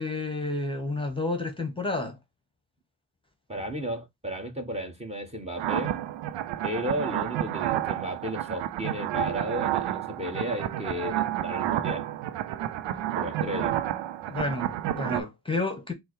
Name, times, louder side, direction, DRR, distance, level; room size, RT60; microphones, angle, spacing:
voice 1, 0.0-2.2 14.3-15.9, left 2 dB, 10° left, 1.2 m, -30 dB
voice 2, 3.5-6.0 6.6-12.1 13.1-13.8, equal, 15° right, 1.4 m, -34 dB
sound 1, 5.6-15.2, right 12 dB, 65° right, 0.6 m, -30 dB
4.2 x 2.2 x 4.5 m
hypercardioid pair, 45°, 48 cm